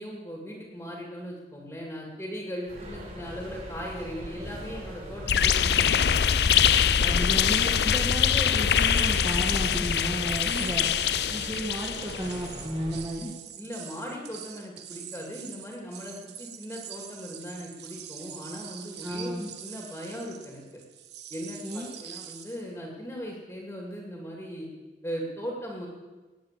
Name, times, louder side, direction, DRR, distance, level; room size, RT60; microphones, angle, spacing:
voice 1, 0.0-6.3 7.0-7.5 13.6-20.8 21.3-24.7 25.0-25.9, equal, 15° left, -1 dB, 2.4 m, -38 dB
sound 1, 2.7-13.0, equal, 45° right, 5.2 m, -41 dB
sound 2, 5.3-12.3, left 8 dB, 70° left, 0.5 m, -23 dB
voice 2, 7.1-10.9 11.3-13.3 19.0-19.5 21.6-21.9, equal, 20° right, -4 dB, 2.1 m, -33 dB
sound 3, 8.7-22.7, right 9 dB, 80° right, 1.3 m, -44 dB
19.0 x 8.6 x 7.5 m, 1.3 s
head